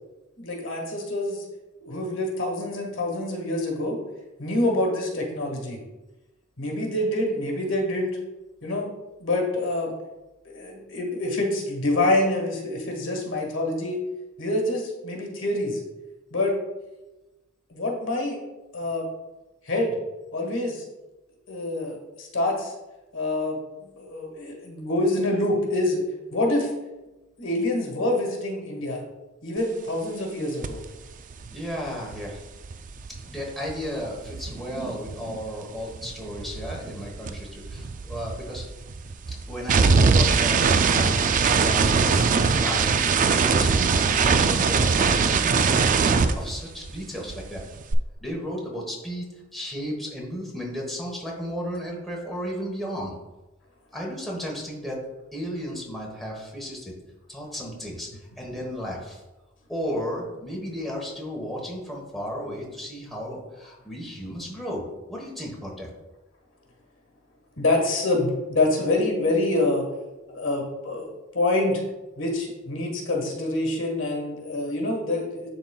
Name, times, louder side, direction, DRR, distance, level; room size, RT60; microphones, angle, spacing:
voice 1, 0.4-1.4 1.8-4.0 4.4-5.8 6.6-8.2 8.6-8.9 9.2-9.9 10.4-14.0 14.4-15.8 16.3-16.6 17.7-18.4 18.7-19.1 19.6-20.0 20.3-20.8 21.5-22.7 23.1-26.0 26.3-26.7 27.4-29.0 29.4-30.8 67.6-69.9 70.3-71.1 71.3-71.8 72.2-75.5, left 2 dB, 65° left, 0 dB, 1.5 m, -26 dB
sound 1, 30.6-30.8 31.1-35.5 35.7-47.0 47.3-47.9, right 5 dB, 40° right, 0.4 m, -22 dB
voice 2, 31.5-32.4 33.3-38.6 39.3-47.6 48.2-53.1 53.9-55.0 55.3-56.9 57.3-58.1 58.4-59.2 59.7-65.9, equal, ahead, -3 dB, 1.1 m, -34 dB
11.0 x 3.9 x 2.3 m, 1.1 s
head